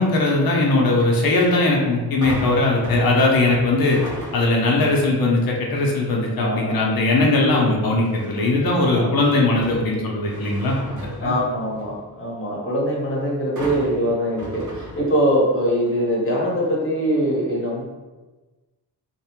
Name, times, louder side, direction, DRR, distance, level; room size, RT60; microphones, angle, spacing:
voice 1, 0.0-4.0 4.3-11.4, left 2 dB, 60° left, -2 dB, 0.6 m, -19 dB
sound 1, 2.2-4.7 5.2-5.6 8.0-8.7 9.2-12.0 13.6-15.5 15.8-15.9, right 1 dB, 45° right, 0.7 m, -36 dB
voice 2, 6.3-6.8 8.9-9.1 9.4-9.5 11.2-17.8, equal, 30° left, -5 dB, 0.9 m, -22 dB
2.6 x 2.0 x 2.9 m, 1.2 s
wide cardioid pair, 90°, 41 cm